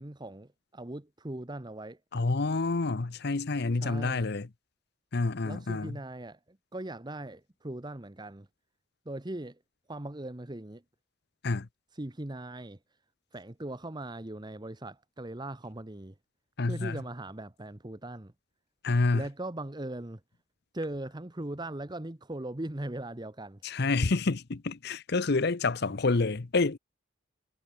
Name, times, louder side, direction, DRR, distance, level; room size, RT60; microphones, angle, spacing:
voice 1, 0.0-2.0 3.8-4.3 5.4-8.5 9.0-9.6 9.9-10.8 11.9-12.8 13.3-16.1 16.6-18.3 19.1-20.2 20.7-23.6, right 1 dB, 20° right, 1.0 m, -39 dB
voice 2, 2.1-4.5 5.1-6.0 11.4-11.7 16.6-17.0 18.8-19.2 23.6-26.8, left 3 dB, 55° left, 0.8 m, -28 dB
head